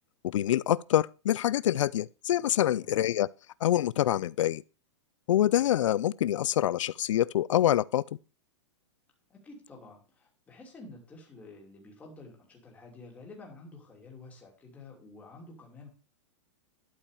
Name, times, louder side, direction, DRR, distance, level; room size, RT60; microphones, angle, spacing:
voice 1, 0.2-3.3 3.6-4.6 5.3-8.0, left 12 dB, 90° left, 0.4 m, -26 dB
voice 2, 9.3-15.9, left 2 dB, 10° left, 2.7 m, -50 dB
12.0 x 5.5 x 6.5 m
supercardioid pair, 170°, 16 cm